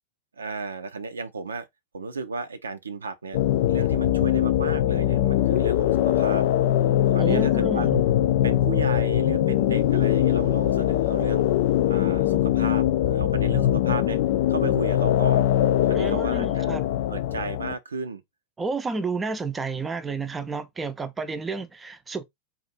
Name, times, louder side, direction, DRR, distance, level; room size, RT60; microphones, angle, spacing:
voice 1, 0.4-1.7 1.9-3.4 3.7-6.4 7.1-7.9 8.4-11.5 11.9-14.2 14.5-15.5 15.9-16.7 17.1-18.2, right 4 dB, 75° right, 0.5 m, -34 dB
sound 1, 3.3-17.7, left 12 dB, 50° left, 0.3 m, -22 dB
voice 2, 7.2-8.0 15.9-16.9 18.6-22.2, right 4 dB, 15° right, 0.6 m, -31 dB
4.0 x 2.5 x 4.0 m
figure-of-eight pair, 90°, 0 cm